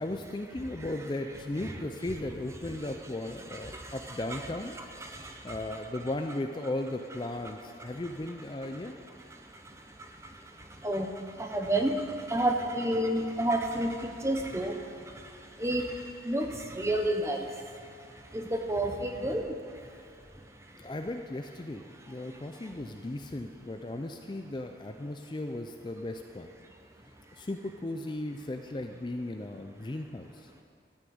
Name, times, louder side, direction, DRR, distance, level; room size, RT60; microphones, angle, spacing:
voice 1, 0.0-4.8 5.4-9.0 20.7-21.8 22.1-26.5 27.3-30.5, left 1 dB, 25° left, 5 dB, 0.4 m, -36 dB
voice 2, 3.5-4.5 4.8-5.8 7.8-8.0 8.7-20.9 21.9-22.8 26.6-26.8 27.3-27.5, right 1 dB, 15° right, 3 dB, 0.9 m, -33 dB
13.5 x 6.4 x 8.6 m, 2.5 s
head